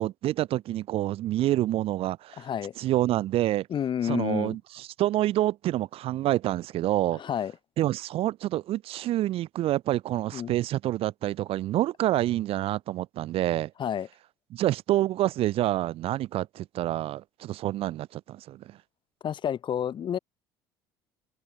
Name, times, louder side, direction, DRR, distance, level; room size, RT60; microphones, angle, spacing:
voice 1, 0.0-2.5 2.8-3.7 4.0-7.2 7.8-13.7 14.5-18.8, right 14 dB, 55° right, 1.0 m, -27 dB
voice 2, 2.4-2.7 3.7-4.6 7.1-7.5 10.3-10.5 13.8-14.1 19.2-20.2, left 9 dB, 45° left, 2.1 m, -30 dB
hypercardioid pair, 65°, 12 cm